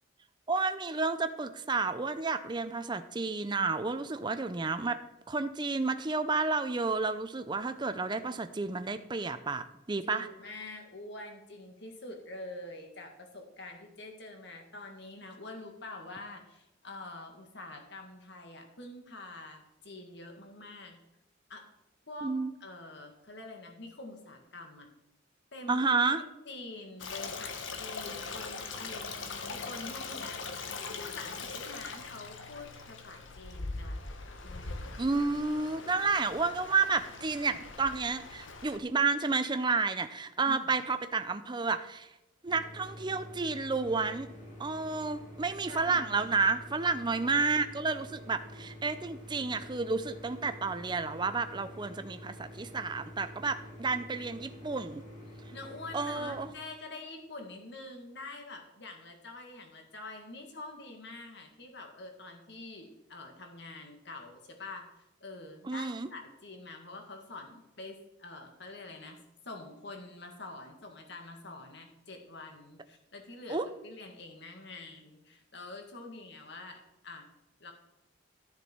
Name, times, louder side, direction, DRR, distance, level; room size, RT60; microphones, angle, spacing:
voice 1, 0.5-5.0 5.3-10.3 22.2-22.5 25.7-26.2 35.0-42.1 42.4-44.3 44.6-55.1 55.9-56.5 65.6-66.1 73.5-73.7, right 4 dB, 25° right, 10 dB, 0.6 m, -31 dB
voice 2, 10.0-21.0 21.5-21.7 22.1-22.3 22.6-24.9 25.5-25.8 26.5-34.0 34.4-35.0 40.4-40.7 45.7-46.4 55.5-64.9 65.2-77.3 77.6-77.7, left 2 dB, 65° left, 4 dB, 1.9 m, -46 dB
Stream, 27.0-38.8, left 4 dB, 80° left, 1.2 m, -41 dB
sound 1, 42.5-56.5, equal, 40° left, 2.2 m, -48 dB
13.0 x 7.1 x 4.5 m, 0.89 s
head